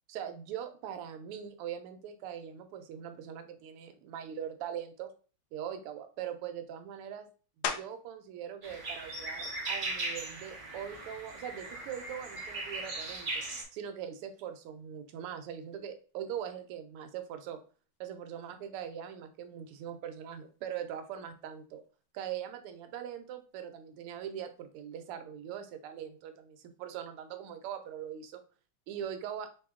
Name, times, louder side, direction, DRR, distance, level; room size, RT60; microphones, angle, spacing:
voice 1, 0.1-5.1 5.5-7.3 7.6-13.4 13.7-17.6 18.0-21.8 22.1-28.4 28.9-29.5, right 9 dB, 85° right, 8 dB, 1.6 m, -41 dB
sound 1, 7.6-8.2 8.8-13.2 13.7-18.9 19.2-24.8, left 6 dB, 75° left, 0.9 m, -47 dB
sound 2, 8.6-13.6, right 2 dB, 40° right, 0.6 m, -38 dB
4.5 x 2.8 x 3.6 m, 0.38 s
omnidirectional pair, 2.4 m